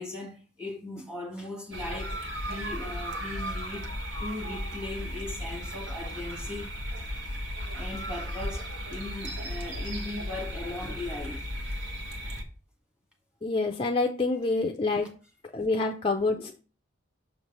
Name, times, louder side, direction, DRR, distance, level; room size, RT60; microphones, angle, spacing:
voice 1, 0.0-3.9 4.2-6.7 7.7-11.5 12.1-12.2 16.3-16.5, left 2 dB, 5° right, 1.4 m, -38 dB
sound 1, 1.7-12.4, equal, 65° right, 1.1 m, -35 dB
voice 2, 13.4-15.1 15.5-16.5, left 3 dB, 25° left, 0.4 m, -27 dB
6.4 x 3.2 x 5.2 m
head